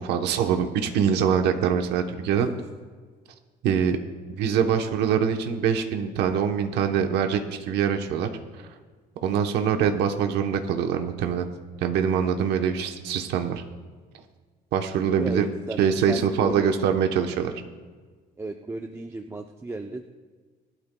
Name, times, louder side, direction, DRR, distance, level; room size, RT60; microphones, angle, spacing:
voice 1, 0.0-2.5 3.6-4.0 4.4-8.3 9.2-11.5 11.8-13.6 14.7-15.5 15.8-17.5, right 7 dB, 85° right, 5 dB, 1.0 m, -24 dB
voice 2, 15.2-16.7 17.4-17.6 18.4-20.2, right 2 dB, 15° right, 3 dB, 0.6 m, -35 dB
21.0 x 12.0 x 2.3 m, 1.5 s
cardioid pair, 110°, 17 cm